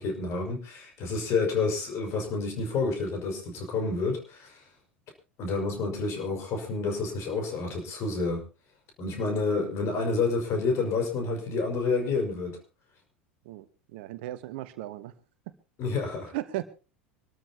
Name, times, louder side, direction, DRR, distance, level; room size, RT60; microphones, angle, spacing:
voice 1, 0.0-4.6 5.4-8.4 9.0-12.6 15.8-16.3, left 4 dB, 45° left, 4 dB, 5.3 m, -29 dB
voice 2, 13.9-15.1 16.3-16.6, right 15 dB, 55° right, 13 dB, 1.1 m, -35 dB
25.5 x 13.5 x 2.9 m, 0.33 s
figure-of-eight pair, 75°, 7 cm